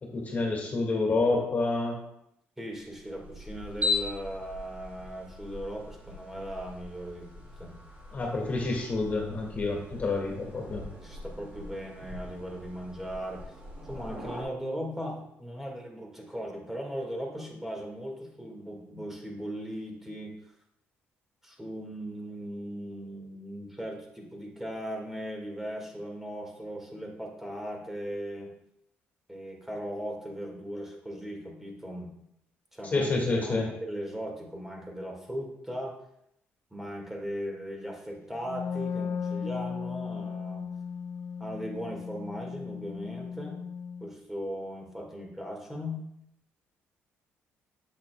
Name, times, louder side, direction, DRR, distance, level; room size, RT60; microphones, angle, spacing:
voice 1, 0.0-2.0 8.1-10.9 32.9-33.7, left 3 dB, 35° left, 0 dB, 2.0 m, -28 dB
voice 2, 2.6-7.8 11.0-13.5 13.8-20.3 21.4-28.5 29.3-32.1 32.7-35.9 36.7-40.7 41.4-43.6 44.0-46.0, equal, 5° right, 0 dB, 1.9 m, -38 dB
sound 1, 2.8-14.4, left 3 dB, 30° right, 3.1 m, -39 dB
Wind instrument woodwind instrument, 38.4-44.1, left 6 dB, 70° left, 0.5 m, -36 dB
8.3 x 8.1 x 2.3 m, 0.78 s
cardioid pair, 100°, 5 cm